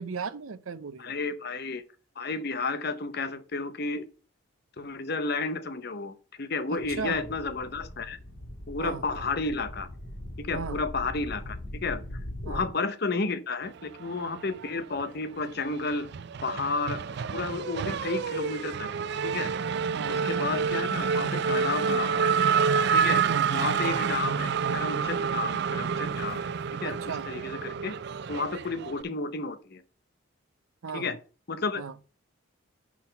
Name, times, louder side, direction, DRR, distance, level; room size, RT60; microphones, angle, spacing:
voice 1, 0.0-1.1 6.7-7.2 8.8-9.2 10.5-10.8 12.4-12.7 19.9-20.3 23.3-24.0 26.8-27.3 30.8-31.2 31.8-31.9, right 5 dB, 90° right, 0.7 m, -37 dB
voice 2, 1.0-1.8 2.2-4.1 4.8-8.2 8.7-9.9 10.4-11.6 11.8-12.0 12.4-16.1 16.4-18.9 19.2-19.5 20.2-22.4 22.9-23.2 23.5-26.4 26.8-27.0 27.3-28.0 28.3-29.8 30.9-31.2 31.5-31.8, left 3 dB, 50° left, 0.8 m, -32 dB
sound 1, 6.8-12.7, left 1 dB, 75° left, 3.3 m, -40 dB
Race car auto racing / Accelerating revving vroom, 14.0-15.0 15.3-29.0, right 6 dB, 55° right, 0.4 m, -28 dB
6.1 x 5.7 x 5.7 m
head